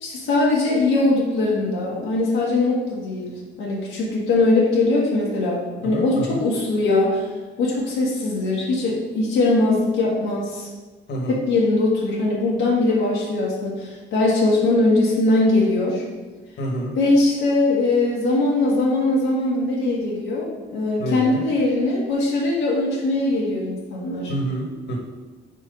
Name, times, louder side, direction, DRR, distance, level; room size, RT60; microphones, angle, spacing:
voice 1, 0.0-7.3 7.6-10.7 11.3-16.0 17.0-24.3, left 2 dB, 85° left, -5 dB, 1.3 m, -21 dB
voice 2, 5.9-6.4 11.1-11.4 16.6-16.9 21.0-21.4 24.3-25.0, right 1 dB, 60° left, -1 dB, 1.5 m, -27 dB
4.4 x 4.2 x 5.1 m, 1.3 s
cardioid pair, 90°, 20 cm